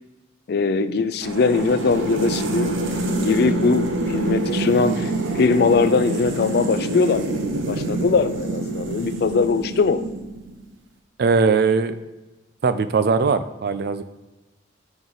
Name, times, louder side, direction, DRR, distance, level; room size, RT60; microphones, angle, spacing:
voice 1, 0.5-2.7 3.2-10.0, left 4 dB, 55° left, 12 dB, 0.4 m, -21 dB
sound 1, 1.2-10.5, right 2 dB, 80° right, 0.8 m, -26 dB
voice 2, 11.2-11.9 12.6-14.0, right 5 dB, 55° right, 12 dB, 0.4 m, -20 dB
6.1 x 3.5 x 5.4 m, 1.1 s
head